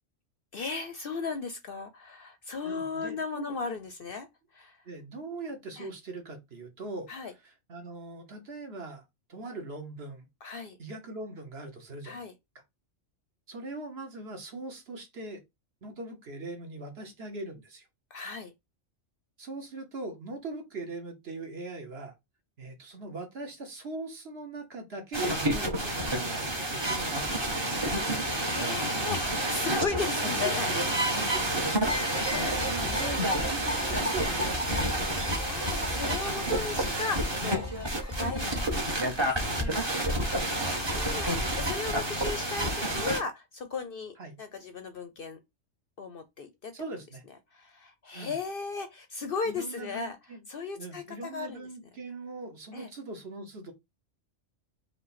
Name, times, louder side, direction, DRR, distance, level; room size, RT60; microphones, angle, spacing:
voice 1, 0.5-4.3 4.5-4.8 5.8-5.9 7.1-7.3 10.4-10.8 12.0-12.3 18.1-18.5 28.3-30.7 32.2-32.7 33.0-33.2 35.4-37.7 38.0-38.6 39.4-39.5 40.2-40.4 40.6-45.4 46.0-46.7 47.5-50.2 50.5-51.6 52.7-52.9, left 5 dB, 55° left, 0.7 m, -36 dB
voice 2, 2.6-3.5 4.8-7.1 7.4-10.3 10.8-12.2 13.5-15.4 15.8-17.9 19.4-22.1 22.6-27.5 30.2-30.9 31.1-31.7 32.4-34.8 39.4-40.2 40.6-40.8 44.2-44.4 46.7-47.2 48.1-48.3 49.4-50.4 50.7-53.7, right 2 dB, 55° right, 1.4 m, -41 dB
sound 1, 25.1-43.2, right 1 dB, 25° right, 1.0 m, -29 dB
sound 2, 31.9-41.1, left 1 dB, 15° left, 0.8 m, -38 dB
5.0 x 2.2 x 4.1 m
omnidirectional pair, 1.3 m